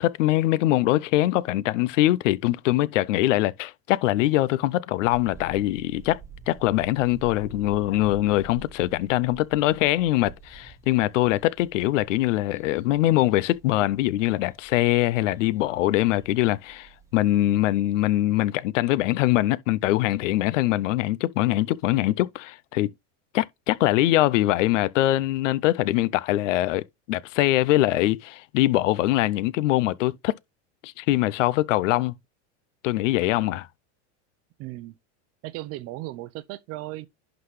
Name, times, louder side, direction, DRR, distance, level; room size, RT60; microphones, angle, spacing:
voice 1, 0.0-6.2 6.5-22.9 23.3-30.3 30.8-32.1 32.8-33.7, left 16 dB, 85° left, 0.6 m, -23 dB
sound 1, 5.0-17.8, right 5 dB, 10° right, 1.2 m, -48 dB
voice 2, 34.6-34.9 35.4-37.1, right 17 dB, 40° right, 0.6 m, -36 dB
11.0 x 4.0 x 3.2 m
supercardioid pair, 145°, 36 cm